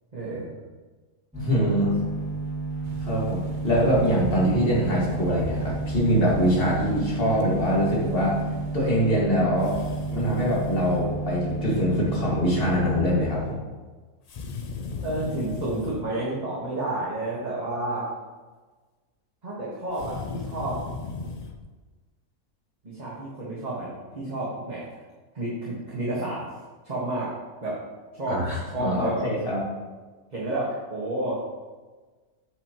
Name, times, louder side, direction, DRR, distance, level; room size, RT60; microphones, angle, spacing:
voice 1, 0.1-0.5 15.0-18.1 19.4-20.8 22.8-24.8 25.3-26.4 26.8-27.3 27.6-27.7 28.1-29.2 30.3-31.4, right 2 dB, 30° right, -7 dB, 1.6 m, -30 dB
voice 2, 1.3-2.0 3.0-3.4 3.6-8.4 8.7-9.8 10.1-13.6 28.3-29.6, equal, 40° left, -5 dB, 2.2 m, -23 dB
sound 1, 1.3-13.2, right 3 dB, 5° right, 1.8 m, -32 dB
sound 2, 2.8-9.0, right 5 dB, 80° right, 0.4 m, -38 dB
sound 3, 9.6-11.1 14.3-16.1 19.9-21.6, left 4 dB, 75° left, 0.3 m, -36 dB
8.0 x 7.4 x 3.0 m, 1.3 s
omnidirectional pair, 1.6 m